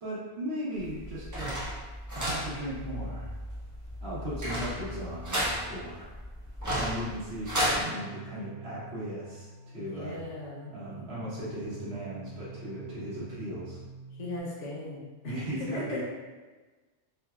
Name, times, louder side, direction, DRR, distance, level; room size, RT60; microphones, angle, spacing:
voice 1, 0.0-1.6 2.1-3.3 4.0-6.1 6.7-10.2 10.7-13.8 15.2-16.0, equal, 65° right, -9 dB, 1.3 m, -37 dB
sound 1, 0.8-7.8, equal, 30° right, 0.3 m, -33 dB
sound 2, 7.7-14.4, right 5 dB, 50° left, 0.6 m, -47 dB
voice 2, 9.8-11.3 14.1-16.0, left 1 dB, 90° left, -4 dB, 1.1 m, -39 dB
3.3 x 2.2 x 2.3 m, 1.3 s
omnidirectional pair, 1.2 m